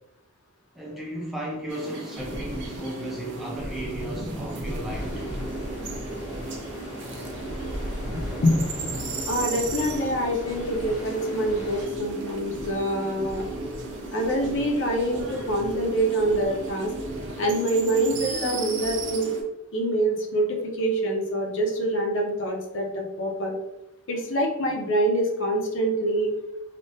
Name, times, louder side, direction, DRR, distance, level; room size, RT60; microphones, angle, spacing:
voice 1, 0.7-5.4, right 1 dB, ahead, 0.4 m, -35 dB
sound 1, 1.7-19.4, right 2 dB, 55° right, 0.5 m, -36 dB
sound 2, 2.1-19.1, equal, 25° right, 1.0 m, -39 dB
sound 3, 4.9-11.8, equal, 85° left, 1.2 m, -41 dB
voice 2, 8.4-8.9 9.3-13.4 14.1-16.9 17.4-19.3 19.7-23.5 24.1-26.3, right 1 dB, 60° left, 0.6 m, -25 dB
3.3 x 2.1 x 2.7 m
head